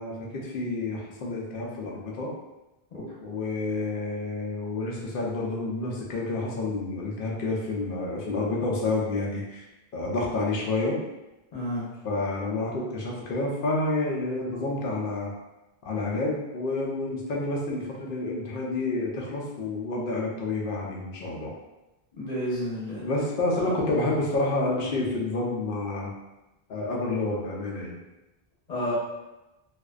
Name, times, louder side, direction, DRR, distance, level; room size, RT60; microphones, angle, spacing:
voice 1, 0.0-2.3 3.2-9.7 9.9-11.0 12.0-15.3 15.8-21.5 23.0-26.1 26.7-28.0, left 2 dB, 65° left, -2 dB, 0.7 m, -29 dB
voice 2, 11.5-11.9 22.2-23.0 23.6-23.7 28.7-28.9, equal, 45° left, -7 dB, 0.9 m, -31 dB
2.5 x 2.1 x 2.3 m, 1.0 s
omnidirectional pair, 1.0 m